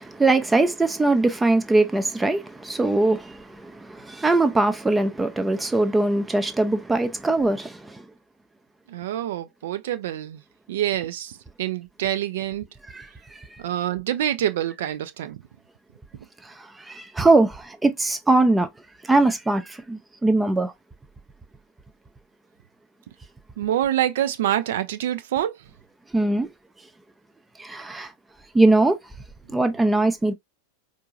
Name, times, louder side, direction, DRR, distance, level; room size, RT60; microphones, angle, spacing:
voice 1, 0.0-8.0 12.9-13.1 16.4-18.7 19.0-20.7 26.1-26.5 27.6-28.1 28.5-29.0 29.5-30.3, right 2 dB, 10° right, 0.6 m, -21 dB
voice 2, 8.9-10.4 10.7-12.7 13.6-15.4 23.6-25.5, right 11 dB, 55° right, 0.5 m, -26 dB
4.6 x 2.6 x 2.4 m
figure-of-eight pair, 90°, 0 cm